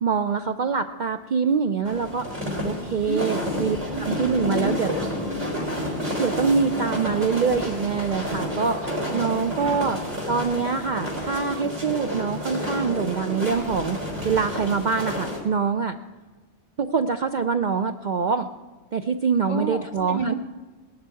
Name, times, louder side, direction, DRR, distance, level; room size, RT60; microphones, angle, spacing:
voice 1, 0.0-2.3 2.6-4.9 6.2-8.8 9.1-10.0 10.3-16.0 16.8-18.5 18.9-20.3, right 5 dB, 55° right, 8 dB, 0.6 m, -24 dB
sound 1, 1.8-15.4, equal, 90° right, 4.7 m, -30 dB
voice 2, 3.0-3.6 3.9-5.7 9.6-9.8 19.5-20.3, equal, 40° left, 2 dB, 1.6 m, -32 dB
18.5 x 11.5 x 4.7 m, 1.3 s
omnidirectional pair, 1.2 m